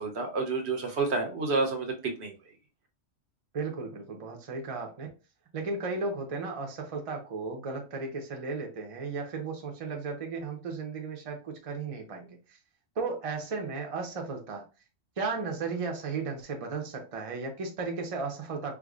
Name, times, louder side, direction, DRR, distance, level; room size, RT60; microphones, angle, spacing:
voice 1, 0.0-1.9 2.2-2.3, right 3 dB, 65° right, 1.0 m, -29 dB
voice 2, 3.5-5.1 5.5-12.6 13.0-14.7 15.2-18.7, right 4 dB, 35° right, 0.6 m, -35 dB
4.6 x 2.2 x 2.4 m
omnidirectional pair, 1.3 m